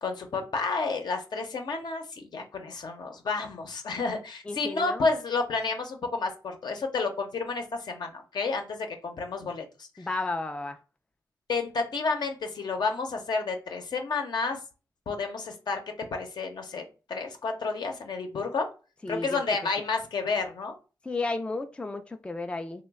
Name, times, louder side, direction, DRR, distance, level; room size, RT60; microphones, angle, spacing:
voice 1, 0.0-9.9 11.5-14.6 15.1-15.8 16.1-18.7 19.1-20.7, left 4 dB, 70° left, 0.7 m, -30 dB
voice 2, 4.5-5.1 10.0-10.8 19.0-19.4 21.0-22.8, left 3 dB, 15° left, 0.3 m, -33 dB
3.0 x 2.1 x 3.4 m
cardioid pair, 80°, 8 cm